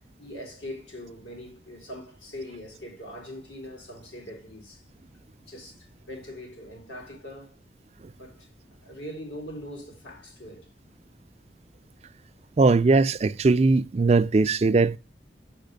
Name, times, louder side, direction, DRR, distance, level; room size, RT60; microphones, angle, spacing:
voice 1, 0.2-4.9 5.4-7.6 8.2-8.5 8.8-10.7, left 1 dB, 85° left, 3.7 m, -41 dB
voice 2, 12.6-15.0, right 3 dB, 35° right, 0.4 m, -20 dB
7.2 x 5.1 x 5.2 m
head